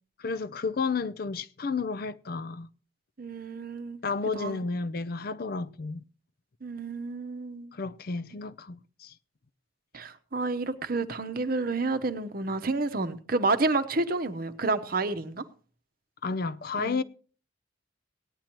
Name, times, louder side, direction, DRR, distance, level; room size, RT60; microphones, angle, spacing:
voice 1, 0.2-2.7 4.0-6.0 7.7-9.1 16.2-17.0, left 4 dB, 45° left, 0.5 m, -32 dB
voice 2, 3.2-4.0 4.3-4.6 6.6-7.7 9.9-15.4 16.8-17.0, right 3 dB, 45° right, 0.8 m, -30 dB
18.0 x 10.0 x 3.0 m
head